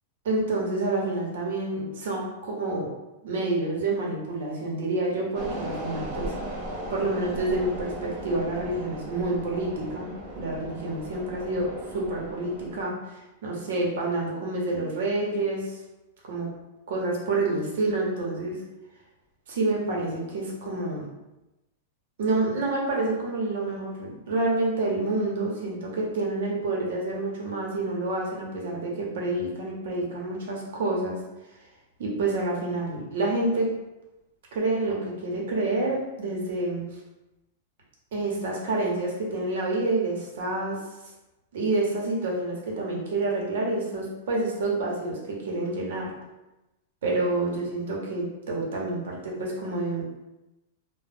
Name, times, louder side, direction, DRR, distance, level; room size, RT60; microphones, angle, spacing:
voice 1, 0.2-2.9 3.2-6.3 6.9-15.8 16.2-16.5 16.9-18.6 19.5-21.0 22.2-31.2 32.0-33.7 34.5-36.8 38.1-40.8 41.5-46.1 47.0-50.0, right 2 dB, 70° right, -2 dB, 0.9 m, -28 dB
sound 1, 5.3-12.8, right 1 dB, 35° right, 0.7 m, -37 dB
2.4 x 2.1 x 3.4 m, 0.99 s
supercardioid pair, 150°, 0 cm